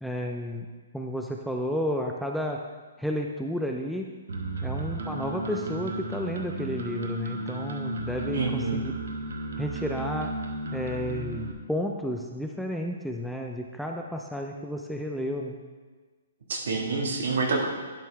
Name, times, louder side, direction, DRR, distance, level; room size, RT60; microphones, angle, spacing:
voice 1, 0.0-0.7 0.9-2.6 3.0-4.1 4.6-8.9 9.6-10.3 10.7-15.5, equal, ahead, 1 dB, 0.3 m, -32 dB
sound 1, 4.3-11.5, right 2 dB, 85° right, 1.0 m, -34 dB
voice 2, 8.3-8.8 16.5-17.7, right 4 dB, 65° right, 0 dB, 1.7 m, -27 dB
11.0 x 5.3 x 3.4 m, 1.4 s
hypercardioid pair, 160°, 0 cm